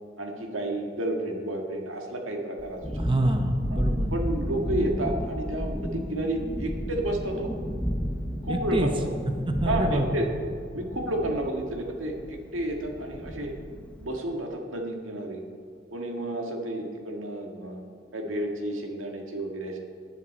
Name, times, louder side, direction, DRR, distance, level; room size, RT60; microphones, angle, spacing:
voice 1, 0.2-2.8 3.7-3.8 4.1-7.5 8.4-8.9 9.6-10.3 10.7-13.5 14.0-15.4 15.9-17.8 18.1-19.8, right 1 dB, 90° right, 2 dB, 1.8 m, -31 dB
Thunderstorm, 2.6-14.2, equal, 5° left, 0.8 m, -33 dB
voice 2, 3.0-4.3 8.5-8.9 9.5-10.3, right 1 dB, 25° right, 5 dB, 0.8 m, -26 dB
18.0 x 10.0 x 4.3 m, 2.2 s
head